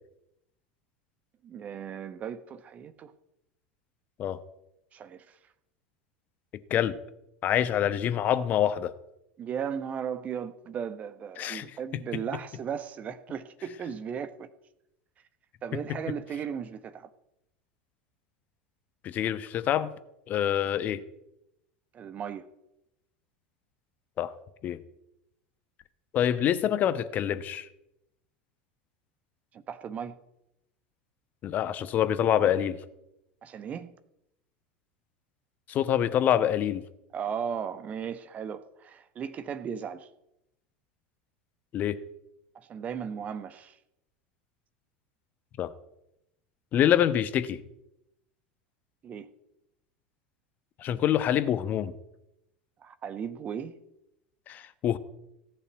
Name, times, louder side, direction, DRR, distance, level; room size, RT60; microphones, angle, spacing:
voice 1, 1.4-3.1 4.9-5.4 9.4-14.5 15.6-17.1 21.9-22.5 29.5-30.2 33.4-33.9 37.1-40.1 42.5-43.8 49.0-49.3 52.8-53.8, right 7 dB, 30° right, 0.9 m, -36 dB
voice 2, 7.4-8.9 11.4-11.7 11.9-12.0 15.7-15.8 19.0-19.9 20.3-21.0 24.2-24.3 24.6-24.8 26.1-27.7 31.4-32.8 35.7-36.8 41.7-42.0 45.6-45.7 46.7-47.6 50.8-51.9 54.5-55.0, left 10 dB, 40° left, 1.0 m, -26 dB
15.5 x 6.7 x 9.1 m
figure-of-eight pair, 80°, 5 cm